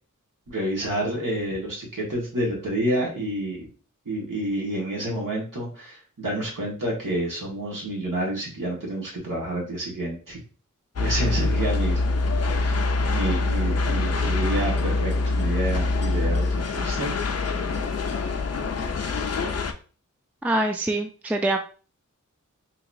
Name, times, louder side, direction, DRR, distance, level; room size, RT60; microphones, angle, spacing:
voice 1, 0.5-3.7 4.0-10.4 11.0-12.0 12.4-12.8 13.1-17.1, right 1 dB, 85° right, -3 dB, 1.5 m, -29 dB
sound 1, 11.0-19.7, left 3 dB, 50° left, 0.5 m, -24 dB
voice 2, 20.4-21.6, right 1 dB, 5° right, 4 dB, 0.4 m, -24 dB
3.9 x 2.8 x 2.6 m, 0.37 s
wide cardioid pair, 55°, 32 cm